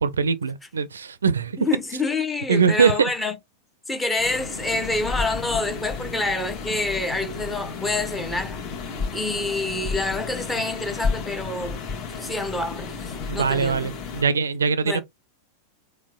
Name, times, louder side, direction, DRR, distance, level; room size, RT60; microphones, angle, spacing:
voice 1, 0.0-1.6 2.5-3.1 13.3-15.0, right 5 dB, 70° right, 0.4 m, -22 dB
voice 2, 1.6-3.4 3.9-8.6 9.1-11.8 12.1-13.0 13.3-13.9 14.8-15.0, left 2 dB, 10° left, 0.9 m, -27 dB
sound 1, 4.2-14.2, left 5 dB, 35° left, 1.2 m, -32 dB
4.3 x 2.2 x 3.6 m
figure-of-eight pair, 90°, 0 cm